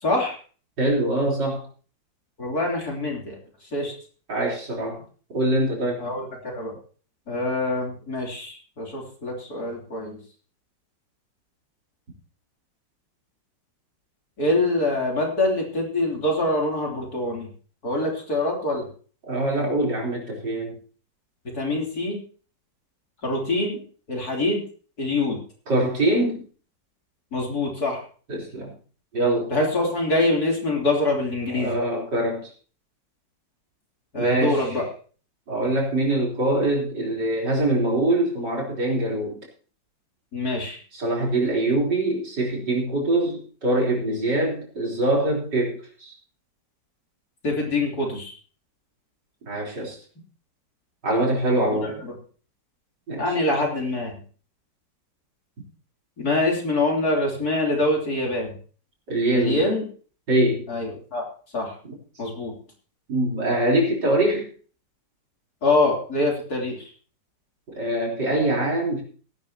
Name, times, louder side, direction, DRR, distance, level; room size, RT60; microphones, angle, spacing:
voice 1, 0.0-0.4 2.4-3.4 3.7-3.9 6.0-6.7 7.3-10.2 14.4-17.5 17.8-18.9 21.5-22.2 23.2-23.8 24.1-24.6 25.0-25.4 27.3-28.0 29.5-31.7 34.1-34.8 40.3-40.8 47.4-48.4 51.8-52.1 53.2-54.2 56.2-58.5 59.3-59.9 60.7-61.2 61.5-61.8 62.2-62.5 65.6-66.9, left 2 dB, 55° left, -1 dB, 3.8 m, -25 dB
voice 2, 0.8-1.6 4.3-5.0 5.3-6.0 19.3-20.8 25.7-26.4 28.3-28.7 29.1-29.5 31.5-32.5 34.2-34.7 35.5-39.4 40.9-46.1 49.5-50.0 51.0-52.0 53.1-53.4 59.1-59.7 60.3-60.7 63.1-64.5 67.7-69.0, right 1 dB, 65° right, -2 dB, 4.4 m, -23 dB
17.0 x 11.5 x 2.8 m, 0.40 s
omnidirectional pair, 2.0 m